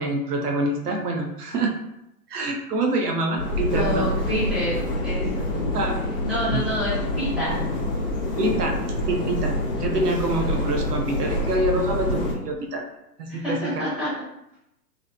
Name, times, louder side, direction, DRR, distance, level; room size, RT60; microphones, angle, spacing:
voice 1, 0.0-1.7 2.3-4.1 5.7-6.0 6.5-6.6 8.4-8.8 9.1-12.8 13.2-13.7, right 2 dB, 70° right, 3 dB, 0.6 m, -26 dB
sound 1, 3.4-12.3, left 1 dB, 30° left, 0.6 m, -26 dB
voice 2, 3.7-5.6 6.0-7.6 13.3-14.1, equal, ahead, -12 dB, 1.0 m, -28 dB
2.5 x 2.4 x 2.2 m, 0.82 s
figure-of-eight pair, 125°, 48 cm